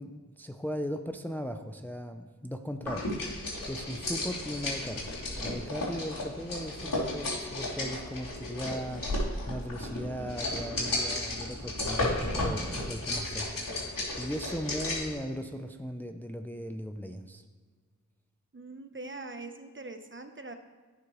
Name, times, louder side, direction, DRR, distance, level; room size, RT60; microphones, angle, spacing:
voice 1, 0.0-17.4, equal, 5° left, 6 dB, 0.6 m, -38 dB
sound 1, 2.8-15.1, left 1 dB, 75° left, 3.1 m, -34 dB
voice 2, 18.5-20.5, right 2 dB, 35° right, 7 dB, 0.8 m, -42 dB
16.0 x 5.8 x 3.2 m, 1.5 s
wide cardioid pair, 50°, 33 cm